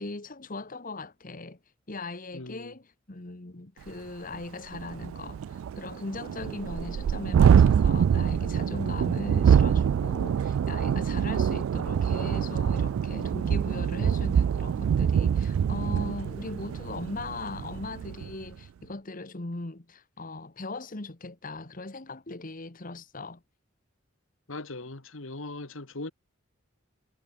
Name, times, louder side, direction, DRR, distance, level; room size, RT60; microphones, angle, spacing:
voice 1, 0.0-1.6 1.9-23.4, left 2 dB, 40° left, 1.4 m, -39 dB
voice 2, 2.3-2.8 24.5-26.1, left 2 dB, 75° left, 2.0 m, -39 dB
Thunderstorm, 3.9-4.0 4.3-4.4 4.7-18.3, right 8 dB, 85° right, 0.3 m, -25 dB
head